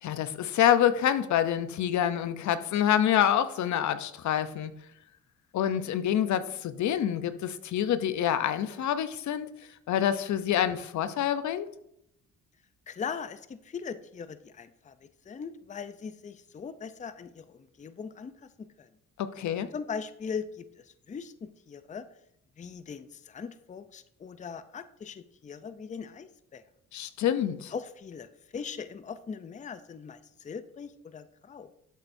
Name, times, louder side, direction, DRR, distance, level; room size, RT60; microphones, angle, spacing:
voice 1, 0.0-4.7 5.5-9.5 9.9-11.7 19.2-19.7 26.9-27.7, left 10 dB, 70° left, 12 dB, 0.7 m, -27 dB
voice 2, 12.9-18.9 19.7-22.1 22.6-26.6 27.7-31.7, left 6 dB, 25° left, 12 dB, 0.5 m, -40 dB
11.0 x 7.9 x 2.6 m, 0.79 s
cardioid pair, 90°, 30 cm